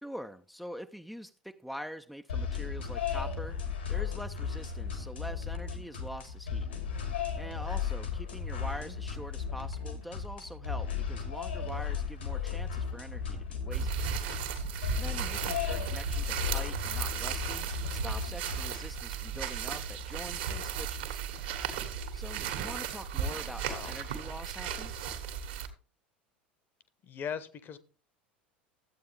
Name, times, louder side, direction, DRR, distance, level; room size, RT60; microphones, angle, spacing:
voice 1, 0.0-3.6 3.9-6.7 7.4-13.9 15.0-21.2 22.1-25.1, equal, ahead, 8 dB, 0.6 m, -44 dB
sound 1, 2.3-19.0, left 6 dB, 80° left, 2.8 m, -35 dB
sound 2, 13.7-25.7, right 8 dB, 65° right, 1.8 m, -35 dB
voice 2, 15.5-15.9 23.2-23.9 27.0-27.8, left 7 dB, 35° left, 14 dB, 1.2 m, -42 dB
13.5 x 8.6 x 3.4 m, 0.36 s
figure-of-eight pair, 75°, 6 cm